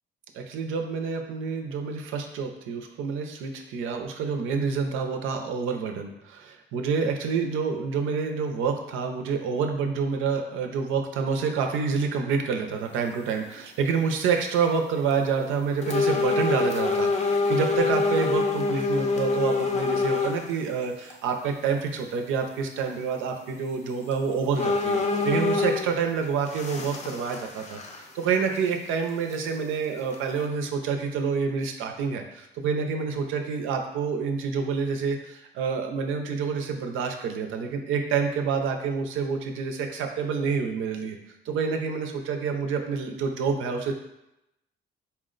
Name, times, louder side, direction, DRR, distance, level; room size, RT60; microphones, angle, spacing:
voice 1, 0.3-41.2 41.5-43.9, right 5 dB, 90° right, 4 dB, 0.5 m, -28 dB
sound 1, 13.4-13.6 14.1-14.5 15.1-15.2 15.8-20.5 21.1-21.2 23.6-23.7 24.1-24.2 24.6-26.0 26.4-28.3 28.6-28.7 29.3-29.4 30.1-30.4, left 4 dB, 35° left, 0.5 m, -26 dB
4.3 x 2.1 x 3.8 m, 0.87 s
cardioid pair, 90°, 20 cm